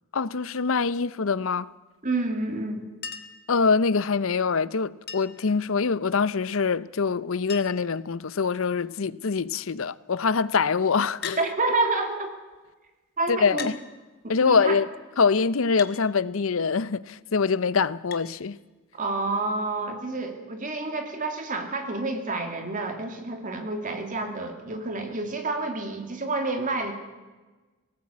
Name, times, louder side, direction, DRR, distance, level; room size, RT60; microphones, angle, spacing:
voice 1, 0.1-1.7 3.5-11.4 13.3-13.8 14.3-14.9 15.2-18.6, left 5 dB, 65° left, 0.6 m, -24 dB
voice 2, 2.0-2.8 11.4-12.3 13.2-13.7 14.2-14.8 18.9-26.9, right 2 dB, 40° right, 2.7 m, -29 dB
Chink clink, 3.0-3.5 5.1-5.5 6.9-7.0 7.2-7.3 7.5-7.9 8.7-9.1 11.2-11.5 12.5-12.6 13.6-13.8 15.8-16.0 18.1-18.3 19.7-19.8, left 7 dB, 50° left, 1.5 m, -38 dB
19.5 x 18.0 x 8.5 m
head